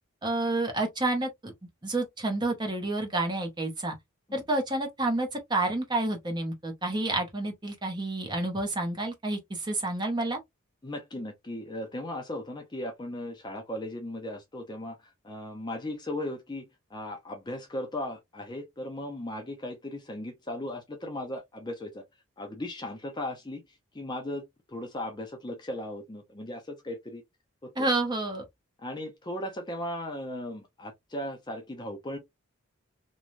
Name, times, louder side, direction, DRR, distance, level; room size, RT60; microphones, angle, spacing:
voice 1, 0.2-1.5 1.8-4.0 4.3-10.4 27.8-28.4, right 2 dB, 20° right, 0.7 m, -29 dB
voice 2, 10.8-22.0 22.4-23.6 23.9-27.2 27.6-27.9 28.8-32.2, left 1 dB, 20° left, 0.5 m, -37 dB
3.1 x 2.2 x 2.5 m
head